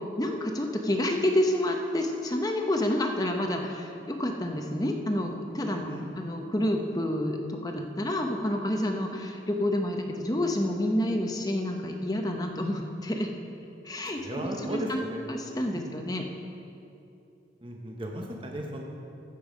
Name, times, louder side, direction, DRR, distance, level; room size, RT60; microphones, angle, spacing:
voice 1, 0.2-13.3 13.8-15.0 15.3-16.2, left 1 dB, 20° left, 3 dB, 0.7 m, -29 dB
voice 2, 5.6-6.1 14.2-15.2 15.7-16.1 17.6-18.8, right 1 dB, 30° right, 0 dB, 0.8 m, -36 dB
15.5 x 5.5 x 5.1 m, 2.7 s
head